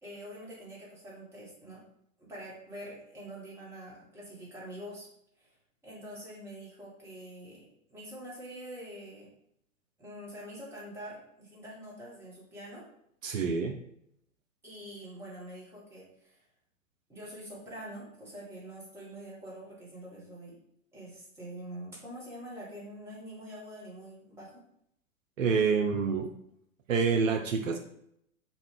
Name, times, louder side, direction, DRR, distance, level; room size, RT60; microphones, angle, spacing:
voice 1, 0.0-1.8 2.2-5.1 5.4-5.5 5.8-9.3 10.0-12.8 14.6-16.4 17.1-20.6 20.9-24.6, right 1 dB, 5° right, -6 dB, 0.9 m, -45 dB
voice 2, 13.2-13.8 25.4-26.3 26.9-27.8, right 5 dB, 70° right, 3 dB, 0.5 m, -27 dB
2.5 x 2.2 x 3.5 m, 0.72 s
figure-of-eight pair, 105°, 41 cm